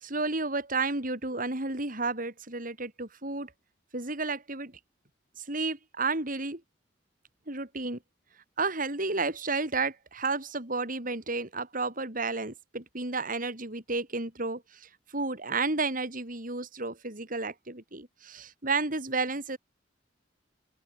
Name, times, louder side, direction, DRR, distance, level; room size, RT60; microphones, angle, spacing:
voice 1, 0.0-3.5 3.9-4.7 5.4-6.6 7.5-8.0 8.6-19.6, right 3 dB, 50° right, 4.3 m, -32 dB
open air
head